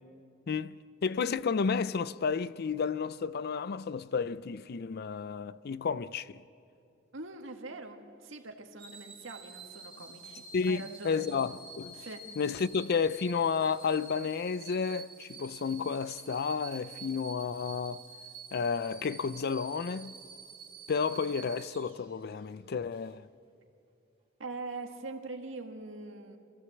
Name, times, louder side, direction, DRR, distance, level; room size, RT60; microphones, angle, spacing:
voice 1, 0.5-6.4 10.5-12.0 12.4-18.0 18.5-20.2 20.9-23.3, left 5 dB, 55° left, 0.5 m, -32 dB
voice 2, 7.1-11.3 11.9-12.2 24.4-26.4, right 3 dB, 80° right, 1.8 m, -43 dB
sound 1, 8.8-22.4 22.9-23.1, right 5 dB, 30° right, 2.5 m, -49 dB
26.5 x 15.0 x 7.9 m
head